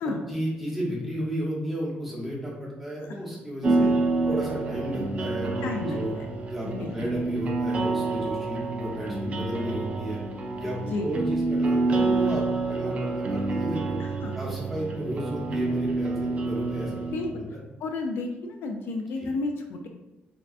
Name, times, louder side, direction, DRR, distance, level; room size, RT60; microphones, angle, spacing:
voice 1, 0.0-3.9 4.3-6.1 6.5-10.2 10.6-14.0 14.3-16.9 17.3-17.6, equal, 5° right, -6 dB, 0.9 m, -33 dB
sound 1, 3.6-17.3, right 3 dB, 35° right, 0.3 m, -28 dB
voice 2, 5.6-6.3 6.6-6.9 10.8-11.1 14.0-14.4 17.1-17.4 17.8-19.9, left 3 dB, 70° left, 3 dB, 0.3 m, -32 dB
3.5 x 2.2 x 2.4 m, 1.0 s
cardioid pair, 135°, 4 cm